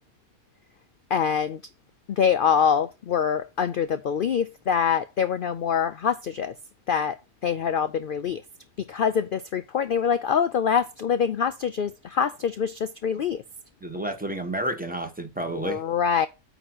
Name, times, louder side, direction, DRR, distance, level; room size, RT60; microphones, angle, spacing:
voice 1, 1.1-1.6 2.1-6.5 6.9-7.2 7.4-8.4 8.9-13.4 15.5-16.3, left 7 dB, 75° left, 0.5 m, -25 dB
voice 2, 13.8-15.8, right 1 dB, 5° right, 1.2 m, -30 dB
9.0 x 3.0 x 6.1 m
omnidirectional pair, 1.5 m